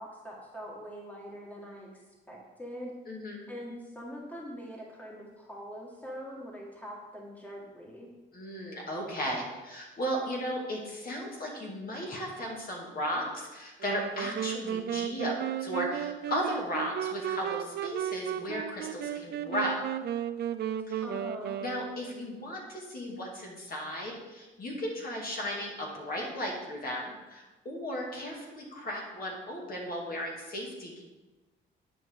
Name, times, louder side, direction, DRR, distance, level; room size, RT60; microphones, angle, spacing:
voice 1, 0.0-2.0 2.3-2.9 3.5-8.1 21.0-21.6, equal, 10° left, -2 dB, 1.7 m, -43 dB
voice 2, 3.1-3.5 8.3-19.8 20.9-21.0 21.6-31.0, equal, 50° left, -2 dB, 2.0 m, -35 dB
sound 1, 13.8-22.3, right 10 dB, 55° right, 0.4 m, -34 dB
10.5 x 5.1 x 3.7 m, 1.2 s
cardioid pair, 90°, 20 cm